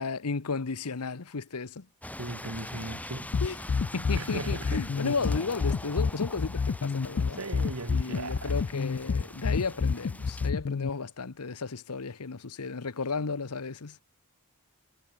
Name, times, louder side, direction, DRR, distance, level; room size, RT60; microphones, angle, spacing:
voice 1, 0.0-1.9 3.4-7.4 7.9-14.0, left 4 dB, 85° left, 1.0 m, -34 dB
sound 1, 2.0-10.5, left 1 dB, 5° left, 8.0 m, -43 dB
voice 2, 2.2-3.4 4.2-5.4 7.4-8.6, right 2 dB, 70° right, 1.9 m, -38 dB
sound 2, 3.3-10.9, left 5 dB, 55° left, 0.4 m, -28 dB
head